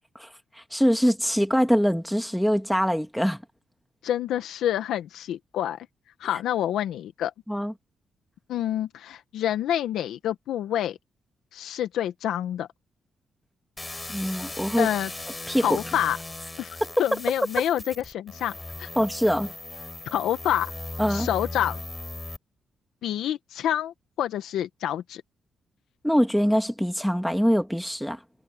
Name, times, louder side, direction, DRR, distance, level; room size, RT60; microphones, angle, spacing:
voice 1, 0.7-3.4 7.5-7.7 14.1-14.9 15.5-15.8 19.0-19.5 21.0-21.3 26.0-28.2, equal, ahead, 2.1 m, -23 dB
voice 2, 4.0-5.9 6.2-7.3 8.5-11.0 11.5-12.7 14.8-15.1 15.6-16.2 16.6-18.9 20.1-20.7 21.1-21.8 23.0-25.2, left 11 dB, 90° left, 1.0 m, -27 dB
sound 1, 13.8-22.4, left 2 dB, 15° left, 3.8 m, -38 dB
cardioid pair, 100°, 0 cm